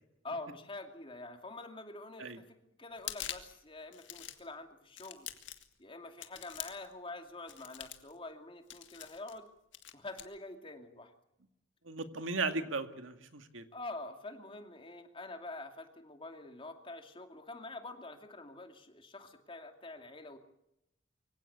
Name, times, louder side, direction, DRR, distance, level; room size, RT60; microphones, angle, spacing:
voice 1, 0.2-5.3 5.8-9.5 9.9-11.1 13.7-20.4, left 2 dB, 25° left, 5 dB, 2.5 m, -46 dB
sound 1, 2.9-3.6 3.9-4.5 5.0-5.7 6.2-6.9 7.5-8.1 8.7-9.4 9.7-10.3, left 12 dB, 70° left, 2.0 m, -44 dB
voice 2, 11.9-13.7, right 3 dB, 90° right, 8 dB, 2.1 m, -36 dB
24.5 x 16.5 x 8.6 m, 0.83 s
head